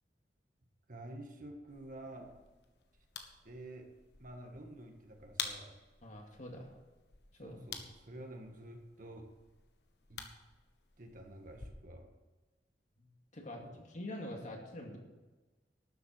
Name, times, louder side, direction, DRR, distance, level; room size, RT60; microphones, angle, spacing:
voice 1, 0.9-2.4 3.4-3.9 4.2-5.8 7.4-9.3 10.1-10.3 11.0-12.1 13.6-13.8, right 1 dB, 50° right, 3 dB, 1.7 m, -49 dB
Light Switch, 1.7-11.7, left 7 dB, 70° left, 1.4 m, -49 dB
voice 2, 6.0-6.7 7.4-7.6 13.0-13.1 13.3-15.0, left 1 dB, 45° left, 1 dB, 2.3 m, -45 dB
12.5 x 7.8 x 7.4 m, 1.2 s
head